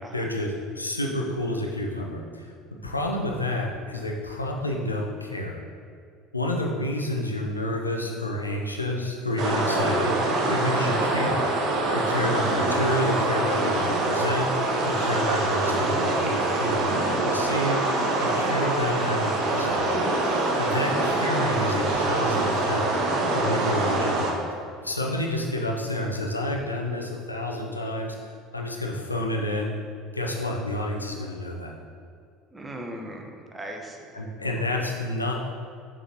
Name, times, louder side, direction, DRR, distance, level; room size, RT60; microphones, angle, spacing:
voice 1, 0.1-0.5 0.8-2.5 2.8-5.6 6.3-11.4 11.9-16.9 17.2-19.9 20.6-22.9 23.3-24.3 24.8-29.7 30.1-31.7 34.1-35.3, left 1 dB, 90° left, 1 dB, 0.6 m, -29 dB
sound 1, 9.4-24.3, right 2 dB, 50° right, 1.0 m, -24 dB
voice 2, 32.5-34.2 34.6-35.0, right 1 dB, 15° right, 2 dB, 1.0 m, -39 dB
6.2 x 6.2 x 2.9 m, 2.3 s
figure-of-eight pair, 65°, 0 cm